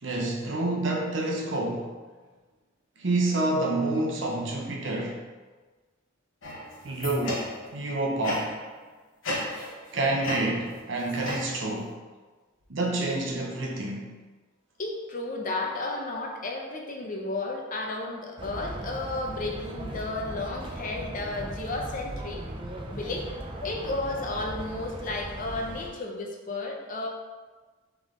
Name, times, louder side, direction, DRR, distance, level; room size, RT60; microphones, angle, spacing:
voice 1, 0.0-1.9 3.0-5.2 6.8-8.5 9.9-11.9 12.7-14.1, right 2 dB, 65° right, -1 dB, 0.8 m, -28 dB
sound 1, 6.4-7.8 8.2-8.7 9.2-9.9 10.2-11.9, left 1 dB, 80° left, 1.2 m, -34 dB
voice 2, 14.8-22.4 22.9-23.2 23.6-27.1, left 2 dB, 40° left, 1 dB, 0.6 m, -33 dB
sound 2, 18.4-25.9, right 1 dB, 25° right, 0.4 m, -38 dB
3.5 x 3.5 x 3.7 m, 1.3 s
head